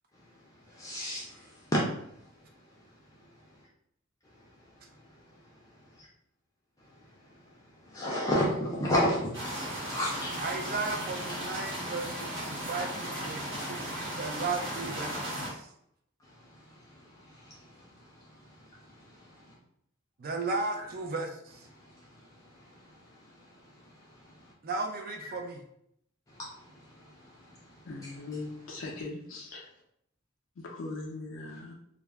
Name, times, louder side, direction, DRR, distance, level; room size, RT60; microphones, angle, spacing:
voice 1, 0.8-1.4 1.7-1.8 7.9-10.4 15.1-15.2 17.3-17.5 28.0-28.1, equal, 15° left, -6 dB, 0.4 m, -29 dB
sound 1, 9.3-15.5, equal, 75° right, 1.1 m, -36 dB
voice 2, 10.4-15.7 20.2-21.3 21.5-21.6 24.6-25.6, right 3 dB, 50° right, 3 dB, 0.4 m, -35 dB
voice 3, 27.9-29.6 30.7-31.7, left 3 dB, 80° left, -1 dB, 0.4 m, -40 dB
2.4 x 2.0 x 3.3 m, 0.74 s
head